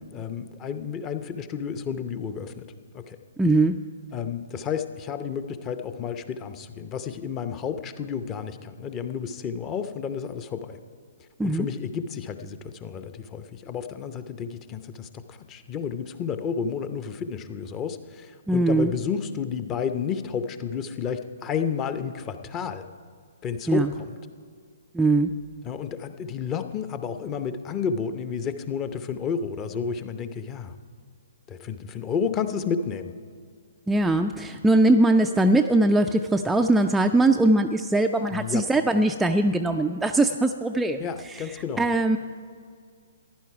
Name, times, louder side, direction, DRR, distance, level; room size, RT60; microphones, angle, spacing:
voice 1, 0.1-2.6 2.9-3.2 4.1-10.8 11.4-22.8 23.4-24.2 25.6-30.8 31.5-33.1 38.3-38.6 41.0-41.8, left 6 dB, 25° left, 10 dB, 0.7 m, -31 dB
voice 2, 3.4-3.7 11.4-11.7 18.5-18.9 23.7-23.9 24.9-25.3 33.9-41.0 41.3-42.2, right 2 dB, 5° right, 4 dB, 0.3 m, -21 dB
15.0 x 11.0 x 4.7 m, 2.1 s
figure-of-eight pair, 125°, 0 cm